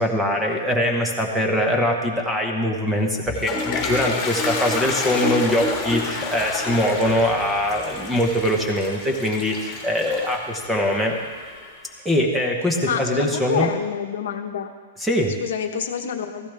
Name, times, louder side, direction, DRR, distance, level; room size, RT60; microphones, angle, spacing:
voice 1, 0.0-11.1 12.0-13.7 15.0-15.3, equal, 5° right, 1 dB, 0.9 m, -22 dB
Toilet flush, 3.0-11.9, left 3 dB, 15° left, 1.6 m, -30 dB
voice 2, 12.8-14.7 15.4-16.5, left 8 dB, 60° left, 6 dB, 1.1 m, -27 dB
15.5 x 15.0 x 3.4 m, 1.5 s
hypercardioid pair, 175°, 0 cm